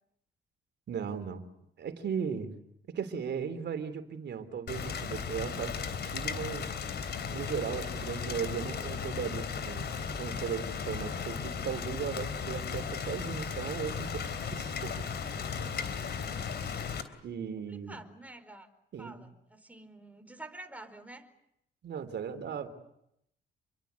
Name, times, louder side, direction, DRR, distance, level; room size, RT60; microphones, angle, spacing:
voice 1, 0.9-1.4 1.8-2.5 2.9-6.8 7.3-15.0 17.2-18.0 18.9-19.2 21.8-22.7, right 7 dB, 60° right, 10 dB, 3.6 m, -37 dB
Rain, 4.7-17.0, left 6 dB, 55° left, 3.4 m, -36 dB
voice 2, 17.7-18.7 19.0-21.3, right 2 dB, 5° right, 7 dB, 4.6 m, -48 dB
28.5 x 23.0 x 8.4 m, 0.77 s
cardioid pair, 90°, 20 cm